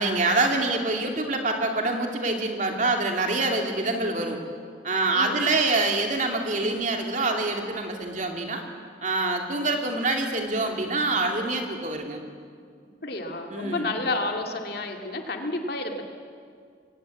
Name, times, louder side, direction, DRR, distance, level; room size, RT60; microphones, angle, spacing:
voice 1, 0.0-4.4 4.8-8.6 9.0-12.2 13.5-13.9, right 2 dB, 40° right, 3 dB, 2.6 m, -25 dB
voice 2, 13.0-16.0, left 2 dB, 55° left, 3 dB, 2.3 m, -30 dB
23.0 x 18.5 x 8.5 m, 2.1 s
head